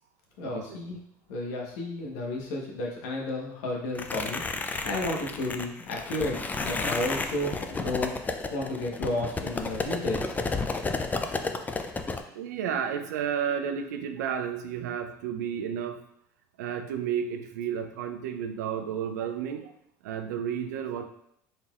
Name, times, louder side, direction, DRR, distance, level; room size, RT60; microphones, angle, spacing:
voice 1, 0.4-1.0 1.3-10.8, left 1 dB, 75° left, -1 dB, 1.1 m, -33 dB
sound 1, 3.9-12.2, left 3 dB, 20° left, 0.4 m, -32 dB
voice 2, 12.3-16.0 16.6-19.7 20.0-21.1, right 8 dB, 85° right, 7 dB, 0.5 m, -32 dB
4.1 x 3.8 x 2.4 m, 0.71 s
hypercardioid pair, 85°, 9 cm